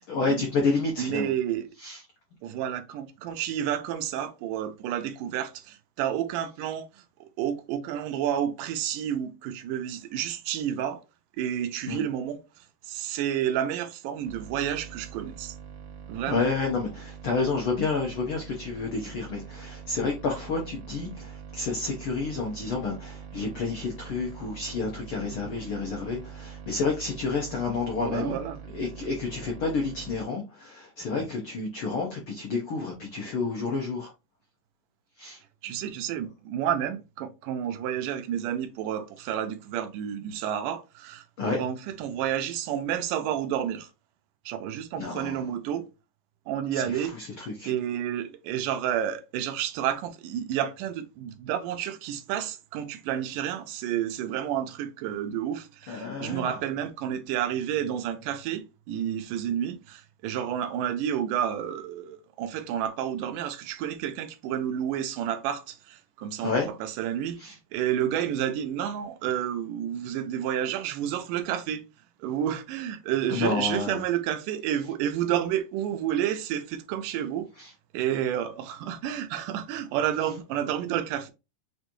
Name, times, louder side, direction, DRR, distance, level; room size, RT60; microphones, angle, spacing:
voice 1, 0.1-1.3 1.8-2.0 11.9-12.0 16.3-28.4 28.7-34.1 35.2-35.4 41.4-41.6 45.0-45.4 46.7-47.7 55.9-56.5 66.4-66.7 67.4-67.5 73.3-74.0 77.6-77.7, left 4 dB, 80° left, 1.2 m, -30 dB
voice 2, 1.0-1.7 2.4-11.0 11.4-15.6 16.1-16.4 28.0-28.6 35.6-41.2 41.6-43.9 44.5-45.9 46.5-47.4 47.7-71.8 72.2-77.5 77.9-81.3, right 10 dB, 85° right, 2.2 m, -30 dB
sound 1, 14.2-30.2, right 8 dB, 70° right, 2.2 m, -44 dB
6.8 x 2.7 x 2.9 m
omnidirectional pair, 3.8 m